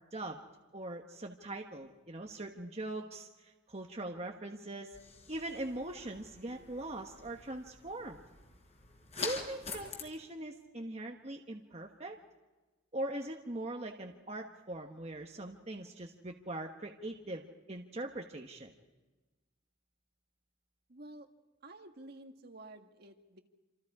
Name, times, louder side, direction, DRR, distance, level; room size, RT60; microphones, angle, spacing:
voice 1, 0.7-5.0 5.3-8.2 9.2-12.2 12.9-18.7, right 1 dB, 35° right, 2 dB, 1.3 m, -41 dB
sound 1, 4.9-10.0, left 4 dB, 35° left, 4.1 m, -45 dB
voice 2, 20.9-21.3 21.6-23.4, right 2 dB, 55° right, 5 dB, 1.8 m, -51 dB
28.0 x 27.0 x 4.9 m, 1.2 s
head